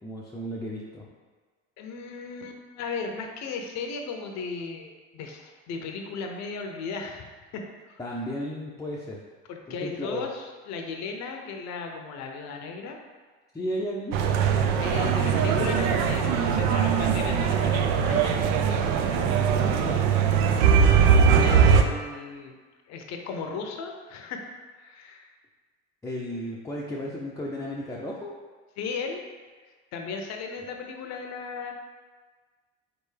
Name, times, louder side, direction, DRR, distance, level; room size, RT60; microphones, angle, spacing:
voice 1, 0.0-1.1 8.0-9.2 9.7-10.3 13.5-14.2 19.0-20.7 26.0-28.3, equal, 10° left, -5 dB, 0.6 m, -35 dB
voice 2, 1.8-8.0 9.5-13.0 14.8-18.5 21.4-22.5 22.9-24.4 24.8-25.3 28.8-29.2 29.9-31.7, left 4 dB, 55° left, 3 dB, 0.7 m, -36 dB
sound 1, 14.1-21.8, right 6 dB, 70° right, 0.5 m, -21 dB
3.9 x 3.5 x 3.3 m, 1.4 s
hypercardioid pair, 70°, 33 cm